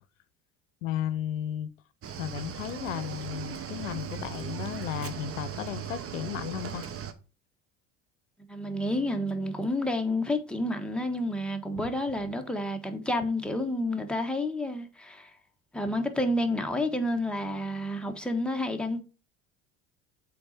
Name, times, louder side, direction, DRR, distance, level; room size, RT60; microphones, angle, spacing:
voice 1, 0.8-1.7 2.2-6.9, left 11 dB, 90° left, 0.6 m, -34 dB
Cricket / Waves surf, 2.0-7.1, right 8 dB, 35° right, 1.1 m, -38 dB
voice 2, 8.5-15.3 15.7-19.0, left 1 dB, ahead, 1.4 m, -30 dB
7.6 x 3.9 x 4.2 m
hypercardioid pair, 75°, 39 cm